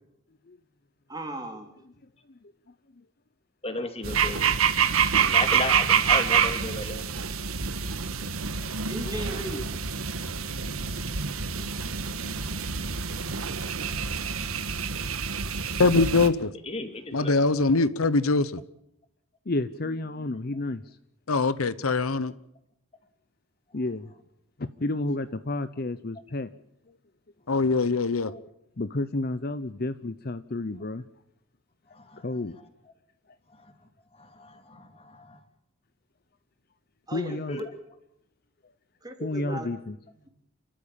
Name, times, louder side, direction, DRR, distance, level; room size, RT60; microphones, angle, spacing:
voice 1, 1.1-1.7 8.8-9.7 37.1-37.6 39.0-39.7 40.2-40.3, right 1 dB, 20° right, 4 dB, 3.3 m, -36 dB
voice 2, 3.6-4.4 5.3-7.0 16.7-17.4 28.3-28.4 32.0-32.2 34.4-35.4 37.5-37.7, left 2 dB, 30° left, 7 dB, 2.6 m, -34 dB
sound 1, 4.0-16.3, right 7 dB, 80° right, 1.5 m, -27 dB
voice 3, 11.6-11.9 19.5-20.8 23.7-24.1 24.6-26.5 28.8-31.0 32.2-32.5 37.1-37.6 39.2-40.0, left 2 dB, 45° left, 12 dB, 0.8 m, -31 dB
voice 4, 15.8-16.5 17.1-18.6 21.3-22.3 27.5-28.3, left 3 dB, 85° left, 16 dB, 0.9 m, -23 dB
29.5 x 13.0 x 8.9 m, 0.80 s
head